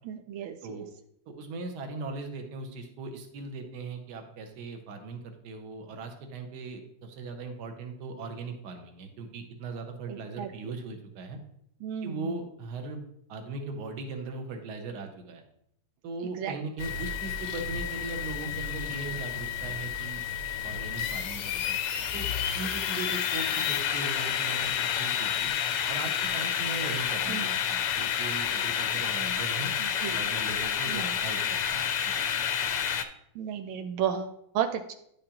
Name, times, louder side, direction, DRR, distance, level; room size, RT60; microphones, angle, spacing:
voice 1, 0.0-0.8 10.1-10.7 11.8-12.4 16.4-16.6 27.3-27.5 29.8-30.2 30.9-31.2 33.3-34.9, right 9 dB, 85° right, 7 dB, 1.4 m, -33 dB
voice 2, 1.3-11.4 12.0-13.0 13.3-15.4 16.0-20.2 20.6-21.8 22.1-25.5 25.9-29.7 30.1-32.3, right 3 dB, 60° right, 4 dB, 1.4 m, -39 dB
sound 1, 16.8-33.0, left 8 dB, 75° left, 1.1 m, -30 dB
10.5 x 5.0 x 2.8 m, 0.74 s
omnidirectional pair, 2.2 m